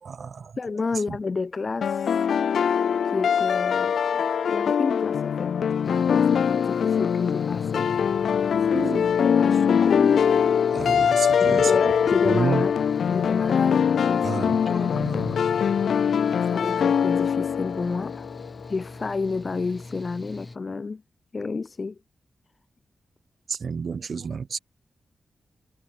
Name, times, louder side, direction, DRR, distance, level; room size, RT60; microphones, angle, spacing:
voice 1, 0.0-1.2 8.7-9.1 10.7-11.8 12.1-12.7 14.2-15.4 23.5-24.6, right 5 dB, 60° right, 3.8 m, -31 dB
voice 2, 0.6-2.2 3.0-5.5 5.8-7.9 8.8-10.2 11.4-12.7 13.1-14.4 14.7-15.4 16.4-18.3 18.7-21.0 21.3-22.0, left 4 dB, 40° left, 3.1 m, -31 dB
sound 1, 1.8-18.7, left 7 dB, 85° left, 0.3 m, -22 dB
Mechanical fan, 5.8-20.6, left 2 dB, 20° left, 5.0 m, -42 dB
wide cardioid pair, 110°, 0 cm